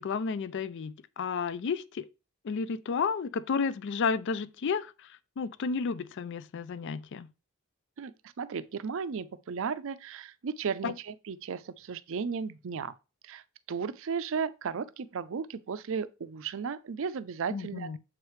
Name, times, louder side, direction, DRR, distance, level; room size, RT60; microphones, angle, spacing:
voice 1, 0.0-2.1 2.4-7.3 10.8-11.0 17.5-18.0, left 5 dB, 55° left, 0.4 m, -32 dB
voice 2, 8.0-12.9 13.2-17.9, right 6 dB, 60° right, 0.4 m, -35 dB
7.3 x 4.7 x 3.2 m
head